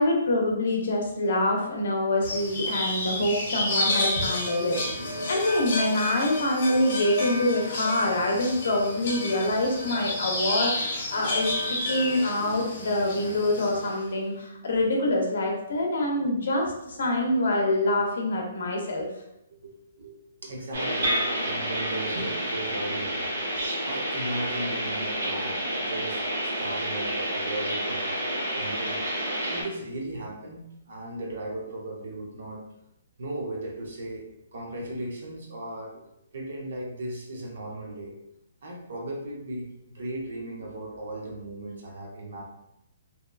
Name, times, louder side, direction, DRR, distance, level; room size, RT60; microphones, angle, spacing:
voice 1, 0.0-4.8 5.3-19.1, left 1 dB, 60° left, 0 dB, 0.6 m, -25 dB
sound 1, 2.2-13.9, left 1 dB, 35° left, 0.9 m, -31 dB
voice 2, 4.6-5.8 19.5-20.2 20.4-23.2 23.5-28.1 28.5-29.1 29.5-32.6 33.2-36.0 36.3-38.2 38.6-42.4, right 1 dB, 60° right, -1 dB, 0.7 m, -37 dB
sound 2, 9.5-12.1 12.7-14.2, left 1 dB, ahead, 0.8 m, -39 dB
sound 3, 20.7-29.6, right 1 dB, 80° right, 1.3 m, -29 dB
2.8 x 2.3 x 2.3 m, 0.84 s
hypercardioid pair, 175°, 0 cm